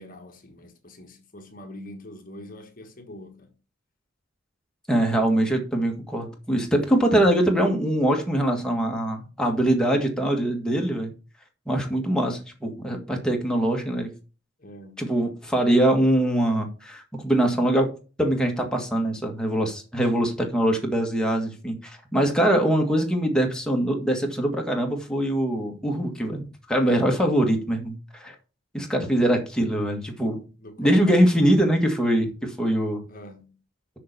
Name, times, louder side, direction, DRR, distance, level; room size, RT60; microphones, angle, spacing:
voice 1, 0.0-3.4 14.6-15.1 29.0-29.1 30.6-31.1 33.1-33.5, left 1 dB, 45° left, 1.5 m, -43 dB
voice 2, 4.9-11.1 11.7-14.1 15.0-17.9 18.2-28.3 28.7-30.4 30.8-33.0, right 1 dB, 5° left, 1.8 m, -23 dB
6.8 x 6.1 x 6.8 m
head